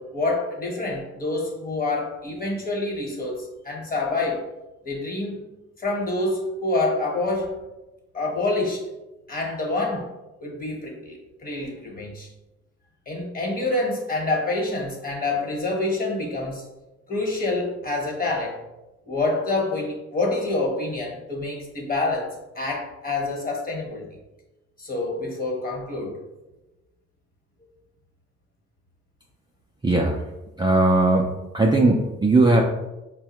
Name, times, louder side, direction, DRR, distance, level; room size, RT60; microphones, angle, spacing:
voice 1, 0.0-4.5 4.8-5.4 5.8-7.5 8.1-8.8 9.3-10.1 10.4-12.3 13.1-16.6 17.1-18.6 19.1-24.0 24.8-26.2, left 2 dB, 30° left, -1 dB, 1.1 m, -27 dB
voice 2, 29.8-30.2 30.6-31.3 31.5-32.6, right 2 dB, 15° right, -1 dB, 0.4 m, -18 dB
4.6 x 2.1 x 2.9 m, 1.0 s
cardioid pair, 90°, 30 cm